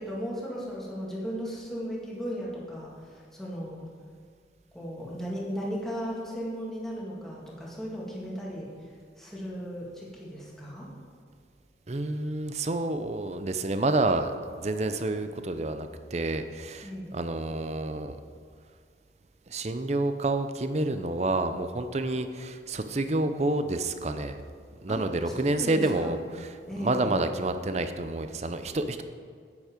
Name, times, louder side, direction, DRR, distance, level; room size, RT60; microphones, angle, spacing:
voice 1, 0.0-3.9 4.7-10.9 16.8-17.2 24.9-25.0 25.3-26.2 26.7-27.2, equal, 5° left, -6 dB, 2.1 m, -36 dB
voice 2, 11.9-18.2 19.5-24.4 24.8-29.0, right 2 dB, 40° right, 9 dB, 0.6 m, -29 dB
9.2 x 8.4 x 5.1 m, 2.1 s
head